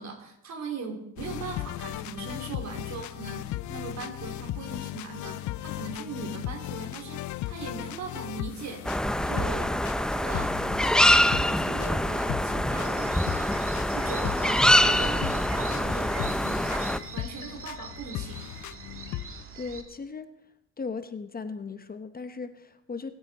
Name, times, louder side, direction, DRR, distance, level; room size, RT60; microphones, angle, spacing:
voice 1, 0.0-8.8 9.2-9.8 10.1-10.6 10.9-18.5, right 4 dB, 65° right, 4 dB, 3.2 m, -39 dB
sound 1, 1.2-19.4, left 15 dB, 75° left, 0.5 m, -38 dB
sound 2, 8.9-17.0, left 1 dB, ahead, 0.5 m, -25 dB
sound 3, 12.8-19.8, right 5 dB, 45° right, 1.9 m, -43 dB
voice 2, 19.6-20.3 20.8-23.1, left 4 dB, 30° left, 10 dB, 0.9 m, -37 dB
23.0 x 8.8 x 4.2 m, 0.84 s
cardioid pair, 90°, 30 cm